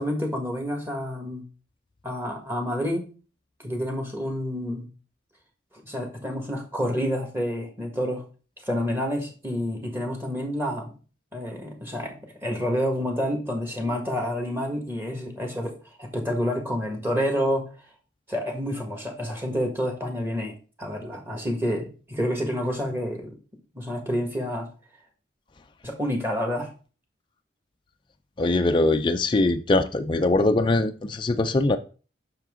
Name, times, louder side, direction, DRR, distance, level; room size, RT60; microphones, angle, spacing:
voice 1, 0.0-1.4 2.0-3.1 3.6-4.9 5.8-8.2 8.6-10.9 11.3-15.7 16.0-17.7 18.3-20.5 20.8-23.3 23.7-24.7 25.8-26.7, equal, 10° right, 2 dB, 1.6 m, -28 dB
voice 2, 28.4-31.8, left 2 dB, 25° left, 7 dB, 0.4 m, -22 dB
7.5 x 5.9 x 3.7 m, 0.36 s
head